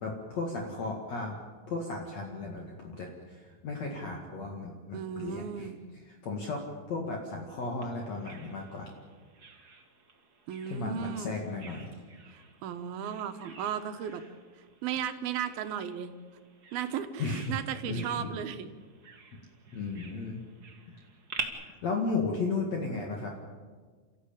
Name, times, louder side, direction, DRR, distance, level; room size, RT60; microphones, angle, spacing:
voice 1, 0.0-1.4 1.7-8.9 10.7-12.0 17.2-17.6 17.8-18.4 19.7-20.4 21.6-23.3, left 3 dB, 50° left, 0 dB, 3.0 m, -35 dB
voice 2, 4.9-5.8 10.5-11.4 12.3-14.2 14.8-16.1 16.7-18.7, right 9 dB, 85° right, 8 dB, 3.0 m, -35 dB
Bird vocalization bird call bird song, 7.8-21.4, right 5 dB, 35° right, 1.8 m, -48 dB
29.0 x 14.5 x 8.7 m, 1.5 s
omnidirectional pair, 4.2 m